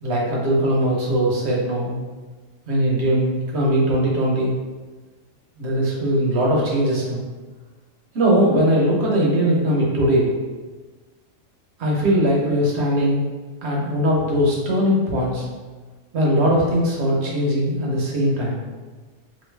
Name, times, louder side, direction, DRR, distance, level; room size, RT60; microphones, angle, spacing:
voice 1, 0.0-2.0 2.7-4.5 5.6-7.2 8.1-10.3 11.8-13.2 13.6-15.4 16.1-18.6, equal, 60° right, -3 dB, 1.0 m, -20 dB
3.2 x 2.6 x 3.2 m, 1.3 s
omnidirectional pair, 1.3 m